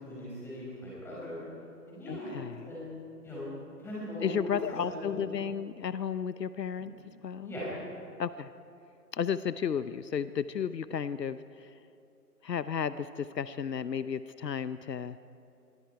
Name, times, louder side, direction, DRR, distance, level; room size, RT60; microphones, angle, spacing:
voice 1, 0.0-1.4 1.9-2.4 2.6-3.5 3.8-4.3 4.7-5.2 6.8-6.9 7.4-7.7, left 1 dB, 5° left, -7 dB, 6.0 m, -40 dB
voice 2, 2.1-2.8 4.2-6.9 7.2-7.5 8.2-8.5 9.1-11.8 12.4-15.2, left 7 dB, 80° left, 14 dB, 0.9 m, -33 dB
27.0 x 23.5 x 4.7 m, 2.6 s
hypercardioid pair, 160°, 49 cm